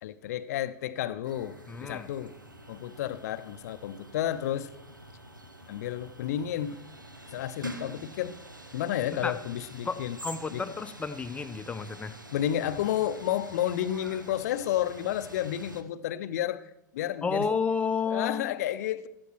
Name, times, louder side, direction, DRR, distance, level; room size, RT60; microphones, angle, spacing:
voice 1, 0.0-2.3 2.7-4.7 5.7-6.8 7.3-8.4 8.7-10.2 10.5-10.6 12.3-17.5 18.1-19.1, left 11 dB, 55° left, 0.6 m, -31 dB
sound 1, 1.2-15.8, right 1 dB, 85° right, 0.9 m, -46 dB
voice 2, 1.7-2.1 9.1-9.4 9.9-12.2 17.2-18.5, left 5 dB, 10° left, 0.6 m, -31 dB
16.0 x 13.0 x 3.0 m
figure-of-eight pair, 90°, 10 cm